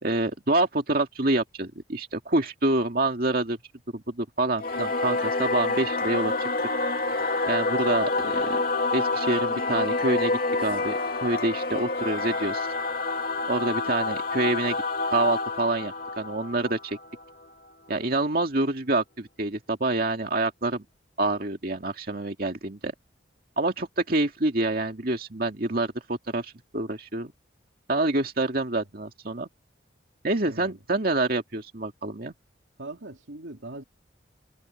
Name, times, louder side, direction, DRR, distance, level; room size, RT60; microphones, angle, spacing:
voice 1, 0.0-3.6 3.9-6.5 7.5-8.6 8.9-12.7 13.5-14.8 15.1-17.0 17.9-20.8 21.2-22.9 23.6-27.3 27.9-29.5 30.2-32.3, right 2 dB, 50° right, 2.2 m, -27 dB
Singing / Musical instrument, 4.6-17.5, left 3 dB, 50° left, 2.5 m, -28 dB
voice 2, 30.4-30.8 32.8-33.8, right 2 dB, 80° right, 2.8 m, -40 dB
head